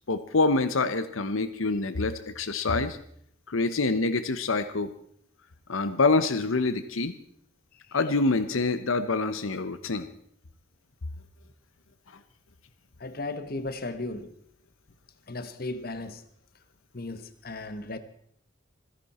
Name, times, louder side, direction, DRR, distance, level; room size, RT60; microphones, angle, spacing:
voice 1, 0.1-3.0 3.5-4.9 5.7-7.1 7.9-10.1, left 3 dB, 80° left, 11 dB, 0.9 m, -26 dB
voice 2, 13.0-14.3 15.3-16.2 16.9-18.0, left 2 dB, 45° left, 11 dB, 1.2 m, -36 dB
27.0 x 10.5 x 4.3 m, 0.66 s
head